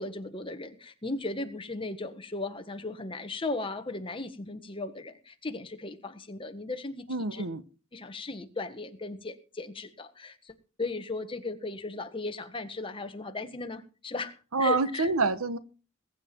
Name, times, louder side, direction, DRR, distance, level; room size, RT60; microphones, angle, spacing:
voice 1, 0.0-7.4 7.9-15.1, left 3 dB, 25° left, 1.5 m, -37 dB
voice 2, 7.1-7.6 14.5-15.6, right 3 dB, 85° right, 1.1 m, -27 dB
21.0 x 8.6 x 4.5 m
head